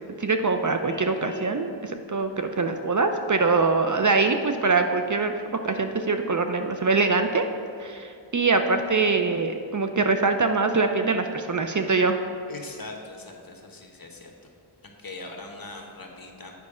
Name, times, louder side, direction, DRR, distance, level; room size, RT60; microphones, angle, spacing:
voice 1, 0.2-5.3 5.6-7.5 7.8-12.2, right 4 dB, 40° right, 6 dB, 0.5 m, -23 dB
Vehicle horn car horn honking, 0.8-1.6, right 2 dB, 30° left, 1.7 m, -42 dB
voice 2, 12.5-14.3 15.0-16.5, left 2 dB, 45° left, 2 dB, 1.2 m, -41 dB
8.4 x 5.3 x 4.9 m, 2.4 s
wide cardioid pair, 55°, 47 cm